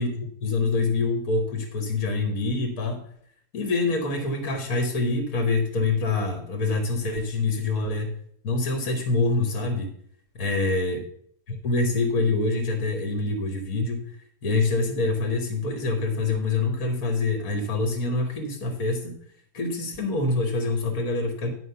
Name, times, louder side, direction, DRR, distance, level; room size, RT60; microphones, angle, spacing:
voice 1, 0.0-3.0 3.5-8.1 8.4-9.9 10.3-11.0 11.5-14.1 14.4-19.1 19.5-21.5, left 3 dB, 50° left, 4 dB, 1.6 m, -25 dB
10.0 x 5.4 x 5.6 m, 0.66 s
omnidirectional pair, 2.2 m